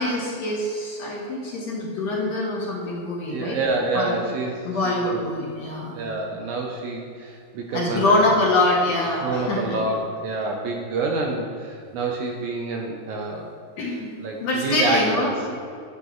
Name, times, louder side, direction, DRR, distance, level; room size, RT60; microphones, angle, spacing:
voice 1, 0.0-3.6 3.9-4.2 4.6-5.9 7.7-9.8 13.8-14.1 14.4-15.6, left 2 dB, 60° left, -5 dB, 2.0 m, -24 dB
voice 2, 3.3-5.3 5.9-8.3 9.2-13.5 14.2-15.3, right 3 dB, 75° right, 0 dB, 1.9 m, -27 dB
9.6 x 9.4 x 2.4 m, 2.4 s
omnidirectional pair, 3.9 m